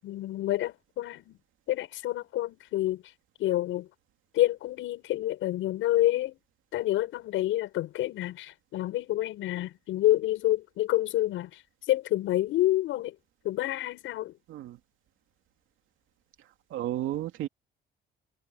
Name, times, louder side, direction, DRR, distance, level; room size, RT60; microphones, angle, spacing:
voice 1, 0.0-1.4 1.7-3.0 3.4-3.9 4.3-6.4 6.7-11.5 11.9-13.1 13.4-14.3, left 15 dB, 90° left, 7.6 m, -28 dB
voice 2, 14.5-14.8 16.7-17.5, right 13 dB, 85° right, 2.8 m, -32 dB
cardioid pair, 90°, 20 cm